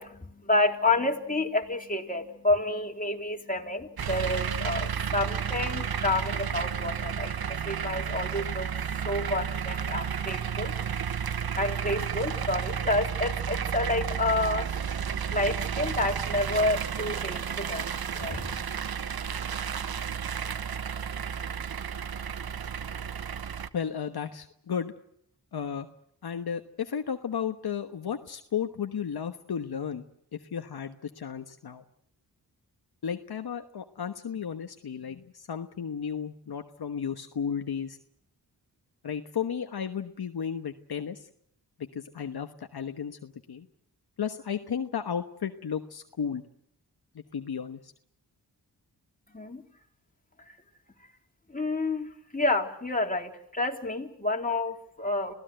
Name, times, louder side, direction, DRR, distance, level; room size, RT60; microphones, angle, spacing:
voice 1, 0.0-18.6 49.3-49.6 50.5-50.6 51.5-55.3, left 2 dB, 20° left, 2 dB, 3.6 m, -30 dB
sound 1, 4.0-23.7, right 7 dB, 65° right, 1.0 m, -32 dB
voice 2, 23.7-24.9 25.5-25.9 26.2-30.1 30.3-31.8 33.0-38.0 39.0-41.2 41.8-43.7 44.2-46.4 47.1-47.9, left 7 dB, 65° left, 7 dB, 1.3 m, -34 dB
27.0 x 16.5 x 7.9 m, 0.71 s
cardioid pair, 45°, 40 cm